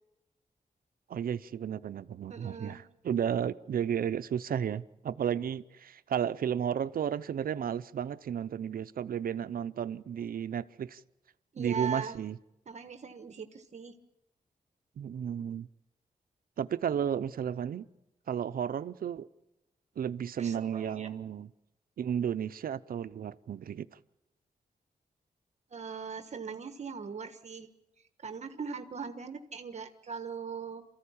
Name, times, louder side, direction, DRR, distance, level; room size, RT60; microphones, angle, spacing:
voice 1, 1.1-11.0 11.6-12.4 15.0-15.7 16.6-17.9 18.3-19.3 20.0-21.5 22.0-23.9, right 8 dB, 85° right, 0.7 m, -33 dB
voice 2, 2.3-2.8 11.5-12.2 12.7-14.0 20.4-21.1 25.7-27.7 28.2-30.8, right 5 dB, 50° right, 1.3 m, -40 dB
28.0 x 14.5 x 8.7 m
wide cardioid pair, 140°, 15 cm